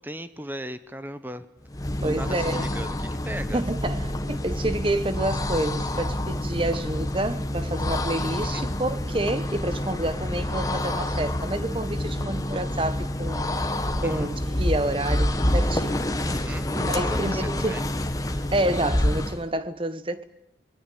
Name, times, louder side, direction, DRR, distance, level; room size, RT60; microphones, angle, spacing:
voice 1, 0.0-1.5 2.0-3.6 8.4-8.6 14.0-14.3 16.2-17.8, right 1 dB, 10° right, 1.0 m, -37 dB
sound 1, 1.7-19.5, left 1 dB, 20° left, 1.4 m, -27 dB
voice 2, 2.0-2.7 3.5-13.5 14.0-17.8 18.5-20.2, right 1 dB, 30° right, 1.3 m, -29 dB
27.5 x 21.5 x 8.7 m
head